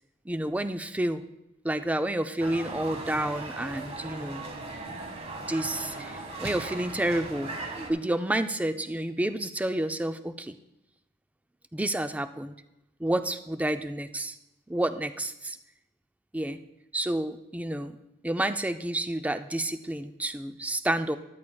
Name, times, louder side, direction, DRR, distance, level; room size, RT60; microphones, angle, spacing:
voice 1, 0.3-1.2 1.6-4.5 5.5-7.6 7.9-10.6 11.7-12.5 13.0-14.4 14.7-15.6 16.3-16.6 16.9-17.9 18.2-21.2, right 1 dB, 10° right, 10 dB, 0.4 m, -29 dB
sound 1, 2.4-7.9, right 2 dB, 35° right, 1.2 m, -38 dB
13.0 x 11.0 x 2.3 m, 0.93 s
head